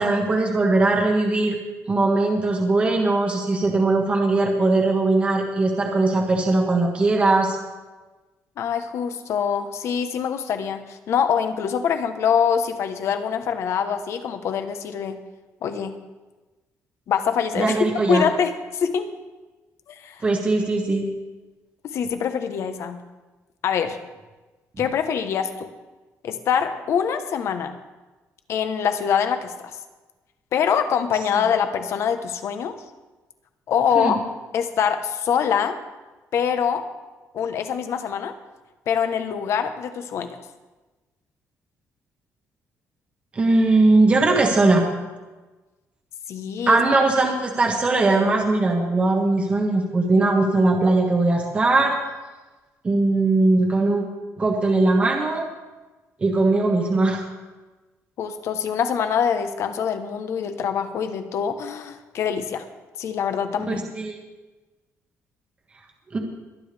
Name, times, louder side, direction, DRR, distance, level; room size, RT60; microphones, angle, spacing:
voice 1, 0.0-1.6 1.9-7.6 17.6-18.2 20.2-21.1 33.9-34.2 43.3-44.8 46.7-52.0 52.8-54.0 54.4-55.5 56.2-57.3 64.0-64.2 66.1-66.2, right 2 dB, 20° right, 1 dB, 1.4 m, -20 dB
voice 2, 8.6-15.2 15.6-15.9 17.1-17.8 18.1-19.1 19.9-20.2 21.8-23.0 23.6-24.0 24.8-25.7 26.2-27.7 28.5-29.5 30.5-32.7 33.7-34.2 34.5-35.8 36.3-36.8 37.3-38.3 38.9-40.4 46.3-46.8 58.2-62.6 63.0-63.8, left 7 dB, 55° left, 8 dB, 1.1 m, -24 dB
22.0 x 10.0 x 3.5 m, 1.2 s
cardioid pair, 170°, 6 cm